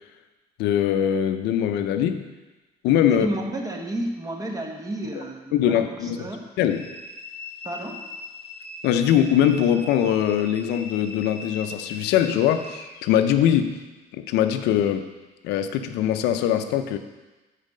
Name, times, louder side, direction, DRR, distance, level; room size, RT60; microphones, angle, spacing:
voice 1, 0.6-2.3 2.8-3.3 5.5-6.3 6.6-6.8 8.8-13.8 14.2-15.1 15.4-17.0, left 10 dB, 90° left, 8 dB, 0.5 m, -22 dB
voice 2, 3.1-6.5 7.6-8.0, right 1 dB, 20° right, 2 dB, 1.1 m, -31 dB
sound 1, 6.7-13.2, left 2 dB, 70° left, 0.8 m, -40 dB
7.2 x 4.2 x 6.4 m, 1.2 s
cardioid pair, 110°, 17 cm